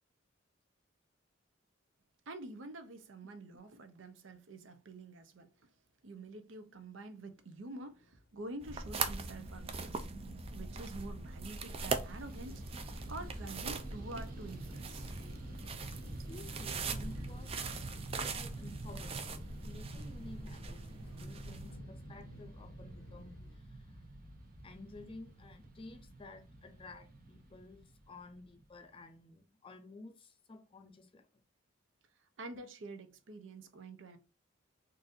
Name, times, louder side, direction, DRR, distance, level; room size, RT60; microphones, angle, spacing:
voice 1, 2.3-5.7 6.0-10.1 10.5-15.1 16.6-17.0 17.5-17.7 32.2-34.2, right 2 dB, 75° right, 0.6 m, -48 dB
sound 1, 6.3-6.4 6.8-6.9 7.2-23.6, left 2 dB, 80° left, 0.6 m, -60 dB
sound 2, 8.6-21.8, right 4 dB, 30° right, 0.4 m, -41 dB
Fixed-wing aircraft airplane, 11.5-28.9, right 2 dB, 45° right, 0.8 m, -48 dB
voice 2, 16.3-20.9 21.2-23.9 24.6-31.3, left 2 dB, 30° left, 0.4 m, -53 dB
3.9 x 2.5 x 2.5 m
head